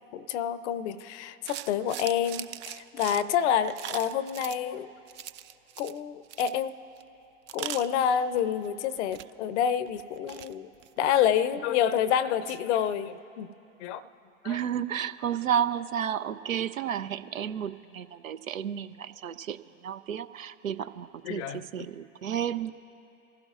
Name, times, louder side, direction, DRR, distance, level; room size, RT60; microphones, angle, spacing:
voice 1, 0.1-4.9 5.8-6.7 7.5-10.7 11.0-13.5 13.8-14.0 14.4-14.6 21.2-21.6, left 9 dB, 60° left, 15 dB, 0.7 m, -28 dB
sound 1, 1.5-4.6 5.1-6.0 6.2-6.6 7.0-7.1 7.5-8.7 9.0-9.3 9.9-11.6 12.0-12.1 12.5-12.6, right 12 dB, 30° right, 0.4 m, -40 dB
voice 2, 14.4-22.7, right 9 dB, 85° right, 13 dB, 0.5 m, -32 dB
25.0 x 15.5 x 2.4 m, 2.8 s
figure-of-eight pair, 80°, 39 cm